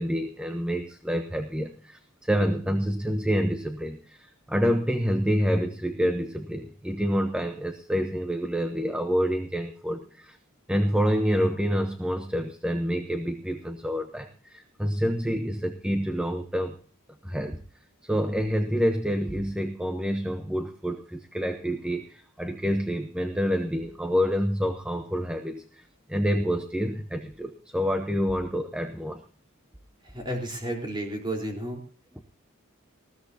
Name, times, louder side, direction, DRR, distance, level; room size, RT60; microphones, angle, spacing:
voice 1, 0.0-10.4 10.7-16.8 17.2-17.6 18.0-25.8 26.1-29.2, equal, 5° right, 6 dB, 0.9 m, -27 dB
voice 2, 30.0-31.8, right 1 dB, 25° right, 1 dB, 4.0 m, -32 dB
20.0 x 15.5 x 2.8 m, 0.41 s
head